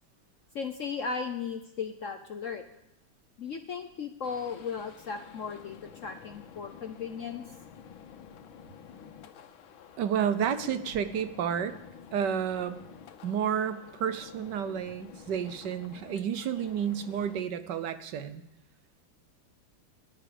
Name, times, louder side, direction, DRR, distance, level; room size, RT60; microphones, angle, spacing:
voice 1, 0.5-2.6 3.4-7.4, left 6 dB, 60° left, 7 dB, 0.8 m, -36 dB
sound 1, 4.2-17.4, left 8 dB, 85° left, 1.7 m, -50 dB
voice 2, 10.0-11.8 12.1-12.8 13.2-18.4, right 8 dB, 65° right, 11 dB, 1.3 m, -31 dB
19.0 x 11.0 x 5.0 m, 0.88 s
omnidirectional pair, 2.1 m